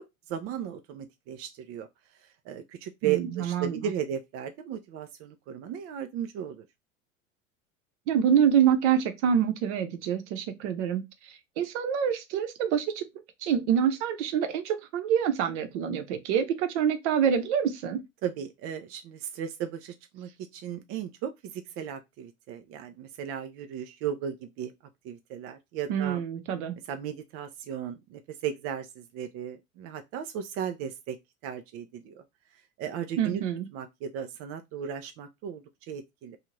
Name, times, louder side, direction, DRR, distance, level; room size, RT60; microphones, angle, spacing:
voice 1, 0.0-1.9 2.2-6.7 18.2-24.7 25.0-26.2 26.9-31.2 31.4-32.2 32.8-33.4 33.7-36.4, right 9 dB, 35° right, 0.4 m, -36 dB
voice 2, 3.0-3.8 8.1-11.0 11.6-13.0 13.4-18.0 25.9-26.8 33.2-33.7, right 8 dB, 60° right, 0.8 m, -26 dB
2.6 x 2.4 x 3.1 m
hypercardioid pair, 85°, 40 cm